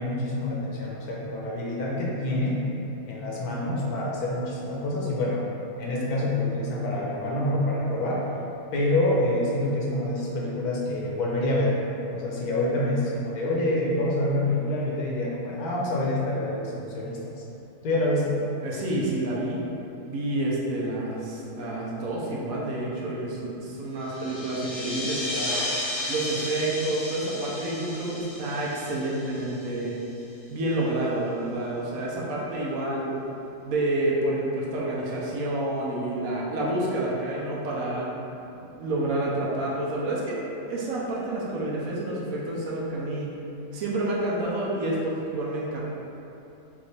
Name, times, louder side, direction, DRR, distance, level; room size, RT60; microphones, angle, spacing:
voice 1, 0.0-2.6 3.1-5.4 5.8-8.2 8.7-11.7 12.1-17.3 17.8-18.3, left 1 dB, 75° left, -4 dB, 1.2 m, -27 dB
voice 2, 18.6-19.6 20.0-25.6 26.1-29.9 30.5-33.1 33.6-38.1 38.6-40.4 40.7-43.3 43.7-45.8, right 1 dB, 70° right, -5 dB, 1.1 m, -29 dB
sound 1, 24.0-30.2, left 1 dB, 45° left, 0.8 m, -34 dB
5.1 x 2.5 x 3.2 m, 2.9 s
omnidirectional pair, 1.6 m